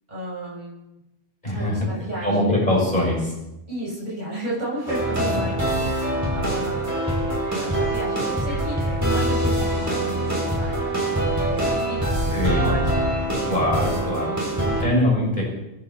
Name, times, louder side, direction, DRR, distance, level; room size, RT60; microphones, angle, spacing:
voice 1, 0.1-0.9 1.5-2.5 3.7-7.0 7.5-10.8 11.4-13.0 14.4-14.9, right 1 dB, 40° right, -7 dB, 6.8 m, -33 dB
voice 2, 1.4-1.9 2.2-3.3 5.2-5.3 12.3-12.7 13.4-14.4 14.8-15.4, left 1 dB, 40° left, -3 dB, 6.9 m, -22 dB
sound 1, 4.9-14.8, right 1 dB, 15° right, 5.4 m, -24 dB
sound 2, 6.6-13.3, equal, 55° right, 5.3 m, -34 dB
28.5 x 11.0 x 4.3 m, 0.91 s
omnidirectional pair, 1.2 m